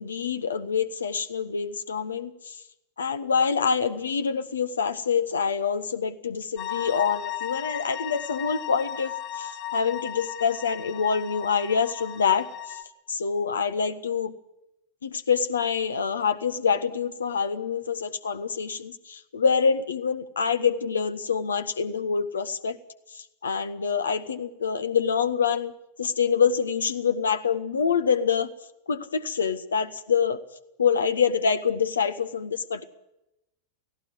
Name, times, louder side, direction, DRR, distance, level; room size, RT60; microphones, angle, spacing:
voice 1, 0.0-2.5 3.0-9.1 9.4-12.5 13.1-14.3 15.0-22.8 23.4-25.7 26.0-28.5 28.9-30.4 30.8-32.8, left 6 dB, 70° left, 11 dB, 1.5 m, -26 dB
sound 1, 6.6-12.8, left 11 dB, 40° left, 2.8 m, -35 dB
17.5 x 16.5 x 9.8 m, 0.85 s
figure-of-eight pair, 90°, 0 cm